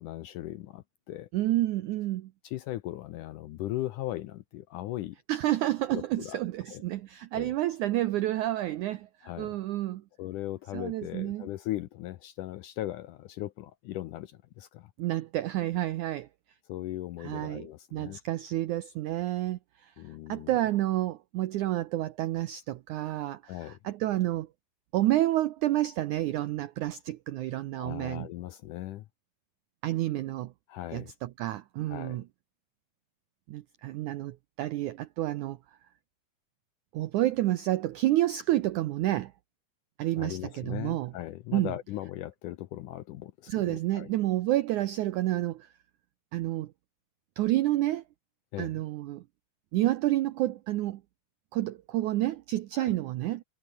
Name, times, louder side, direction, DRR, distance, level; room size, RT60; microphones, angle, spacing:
voice 1, 0.0-1.3 2.4-5.2 5.9-6.4 6.7-6.8 7.3-7.5 9.2-9.6 10.2-14.9 16.7-18.2 20.0-20.6 23.5-23.8 27.7-29.1 30.7-31.1 31.9-32.2 40.2-44.1 48.5-48.8 52.7-52.9, left 14 dB, 75° left, 1.9 m, -38 dB
voice 2, 1.3-2.3 5.3-9.1 9.4-10.0 10.7-11.5 15.0-16.3 17.2-19.9 20.3-24.5 24.9-28.3 29.8-30.5 30.9-32.2 33.5-35.6 36.9-39.3 40.0-41.1 41.5-41.7 43.5-45.7 46.3-46.7 47.4-48.0 48.6-49.2 49.7-51.0 51.5-53.4, right 15 dB, 85° right, 1.7 m, -29 dB
omnidirectional pair, 4.5 m